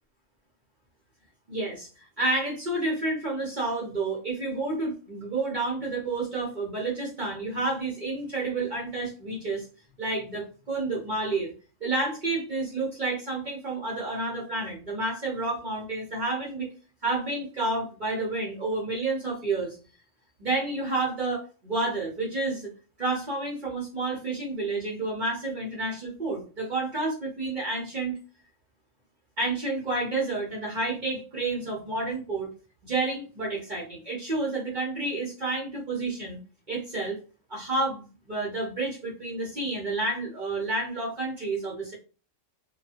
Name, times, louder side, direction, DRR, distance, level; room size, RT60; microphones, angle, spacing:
voice 1, 1.5-1.9 2.2-9.7 10.0-11.5 11.8-16.7 17.0-19.8 20.4-22.7 23.0-28.2 29.4-32.5 32.8-36.4 36.7-37.2 37.5-41.9, right 2 dB, 45° right, -4 dB, 0.7 m, -30 dB
2.6 x 2.4 x 2.5 m, 0.35 s
omnidirectional pair, 1.4 m